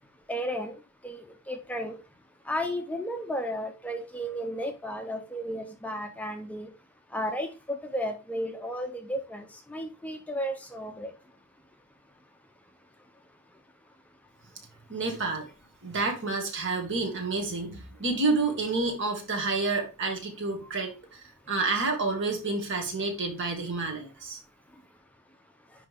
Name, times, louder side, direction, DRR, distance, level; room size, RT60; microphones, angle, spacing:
voice 1, 0.3-0.7 1.0-2.0 2.5-6.7 7.1-11.1, equal, 5° left, 5 dB, 0.7 m, -33 dB
voice 2, 14.9-15.5 15.8-24.4, right 3 dB, 55° right, 3 dB, 2.1 m, -29 dB
10.0 x 3.5 x 3.5 m, 0.32 s
head